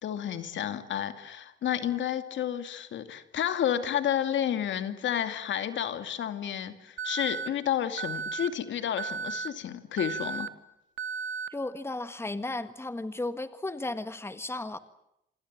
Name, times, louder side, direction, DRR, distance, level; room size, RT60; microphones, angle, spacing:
voice 1, 0.0-10.5, left 10 dB, 70° left, 9 dB, 2.6 m, -31 dB
Alarm, 7.0-7.5 8.0-8.5 9.0-9.5 10.0-10.5 11.0-11.5, right 5 dB, 70° right, 1.8 m, -34 dB
voice 2, 11.5-14.8, left 2 dB, 10° left, 11 dB, 1.7 m, -34 dB
26.5 x 26.5 x 7.6 m, 0.81 s
cardioid pair, 90°, 20 cm